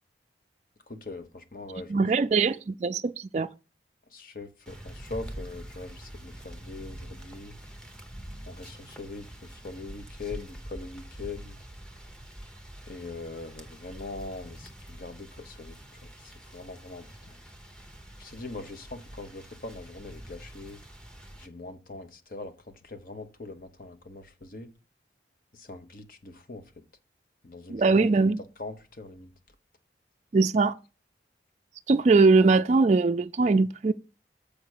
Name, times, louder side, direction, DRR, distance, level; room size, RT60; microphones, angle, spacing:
voice 1, 0.9-2.0 4.1-7.6 8.5-11.6 12.9-17.4 18.2-20.8 21.4-24.7 25.5-26.8 27.4-28.3 28.6-29.3, left 3 dB, 50° left, 1.0 m, -42 dB
voice 2, 1.9-3.5 27.7-28.4 30.3-30.8 31.9-33.9, right 3 dB, 40° right, 0.3 m, -21 dB
sound 1, 4.7-21.5, right 1 dB, 5° left, 0.8 m, -45 dB
7.0 x 5.1 x 6.5 m
head